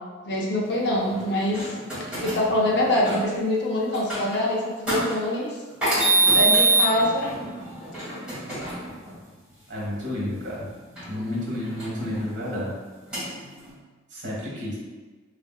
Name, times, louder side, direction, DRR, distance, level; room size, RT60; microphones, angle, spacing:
voice 1, 0.2-1.7 2.2-5.5 6.3-7.3 11.1-11.2, left 1 dB, 60° left, -3 dB, 0.6 m, -24 dB
sound 1, 1.1-3.2 3.9-4.4 4.9-5.1 5.8-9.1 11.0-12.6 13.1-13.7, right 2 dB, 5° right, 1.4 m, -25 dB
voice 2, 9.7-10.6 11.1-12.7 14.1-14.7, left 1 dB, 60° right, -5 dB, 1.4 m, -30 dB
3.3 x 2.8 x 2.3 m, 1.3 s
head